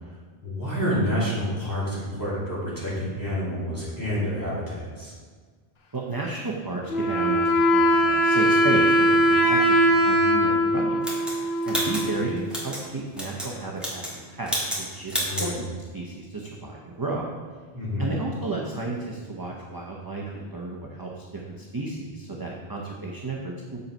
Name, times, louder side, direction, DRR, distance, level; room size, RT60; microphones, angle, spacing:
voice 1, 0.4-5.1 15.3-15.6 17.7-18.1, equal, 20° left, -8 dB, 2.7 m, -28 dB
voice 2, 5.9-11.1 11.6-15.6 15.9-17.3 18.0-23.8, right 3 dB, 25° right, -2 dB, 0.7 m, -33 dB
Wind instrument woodwind instrument, 6.9-12.4, equal, 75° left, 1.1 m, -21 dB
sound 1, 11.0-12.8 13.1-13.5 13.8-14.2 14.5-14.8 15.1-15.5, right 1 dB, ahead, 1.9 m, -30 dB
7.2 x 5.4 x 5.3 m, 1.5 s
omnidirectional pair, 1.1 m